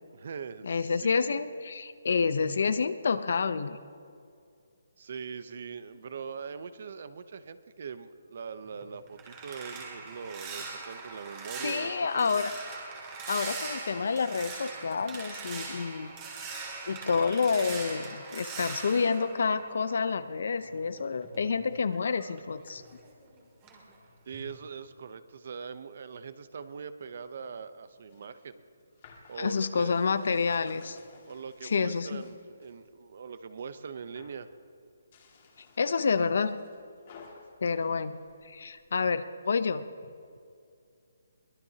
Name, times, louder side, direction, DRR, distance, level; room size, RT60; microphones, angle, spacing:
voice 1, 0.1-1.2 5.0-12.4 24.3-28.6 29.3-30.1 31.3-34.5, right 6 dB, 50° right, 12 dB, 0.8 m, -42 dB
voice 2, 0.6-3.8 11.6-12.5 13.3-16.1 16.9-22.8 29.4-31.0 31.6-32.2 35.8-36.6 37.6-38.2 38.4-39.8, left 5 dB, 60° left, 13 dB, 0.7 m, -28 dB
sound 1, 8.7-20.3 20.6-23.3 23.6-23.9 24.3-24.6, right 4 dB, 20° right, 2.2 m, -41 dB
sound 2, 27.9-32.8 33.2-33.7 34.0-34.5 35.0-38.9, left 5 dB, 35° left, 2.1 m, -56 dB
23.0 x 18.5 x 2.9 m, 2.4 s
hypercardioid pair, 170°, 0 cm